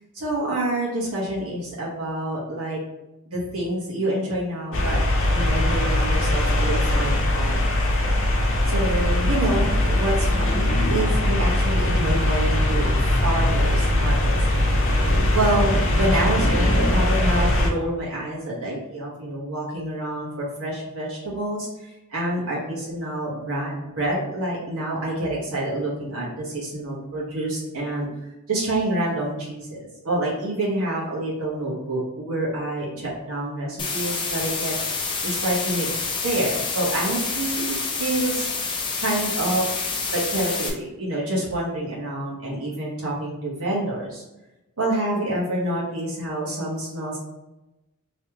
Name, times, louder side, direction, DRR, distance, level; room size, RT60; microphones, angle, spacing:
voice 1, 0.1-2.8 3.3-5.0 5.3-7.7 8.7-12.9 13.2-14.7 15.3-21.7 22.1-28.1 28.5-34.7 35.2-35.9 36.2-38.5 39.0-39.6 40.1-44.2 44.8-47.2, right 1 dB, 70° right, -5 dB, 1.5 m, -27 dB
sound 1, 4.7-17.7, left 1 dB, 60° left, 0.7 m, -21 dB
sound 2, 33.8-40.7, left 4 dB, 20° left, 0.5 m, -28 dB
3.2 x 3.2 x 3.0 m, 0.98 s
head